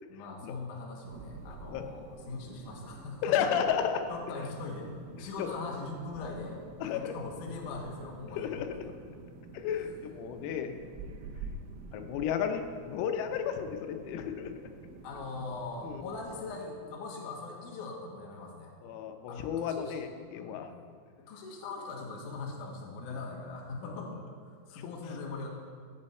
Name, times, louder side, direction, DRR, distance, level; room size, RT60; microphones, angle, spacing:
voice 1, 0.1-3.5 4.1-9.0 15.0-18.7 19.3-20.0 20.3-20.6 21.3-25.5, left 3 dB, 70° left, -1 dB, 1.9 m, -41 dB
sound 1, 1.0-16.6, right 4 dB, 80° right, 3.3 m, -48 dB
voice 2, 3.2-4.0 5.4-5.5 6.8-7.1 8.4-8.7 9.5-10.8 11.9-14.5 15.8-16.0 18.8-20.7 23.8-23.9, left 8 dB, 90° left, 6 dB, 3.5 m, -32 dB
15.0 x 7.2 x 4.3 m, 2.1 s
omnidirectional pair, 5.9 m